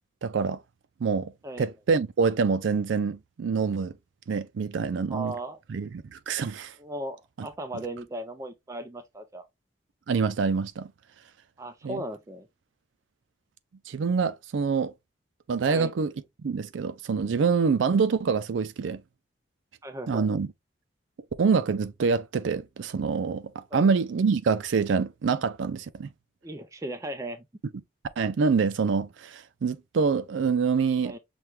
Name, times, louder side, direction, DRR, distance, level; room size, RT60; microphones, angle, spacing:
voice 1, 0.2-0.6 1.0-1.3 1.6-3.9 4.3-5.3 5.7-6.7 7.4-7.5 10.1-10.9 11.8-12.0 13.9-14.9 15.5-16.1 16.4-19.0 20.1-20.5 21.4-26.1 28.2-31.1, right 5 dB, 80° right, 0.4 m, -26 dB
voice 2, 5.1-5.6 6.8-9.5 11.6-12.5 15.7-15.9 19.8-20.3 23.7-23.9 26.4-27.5 31.0-31.2, right 1 dB, 15° right, 0.4 m, -36 dB
5.9 x 2.2 x 3.2 m
head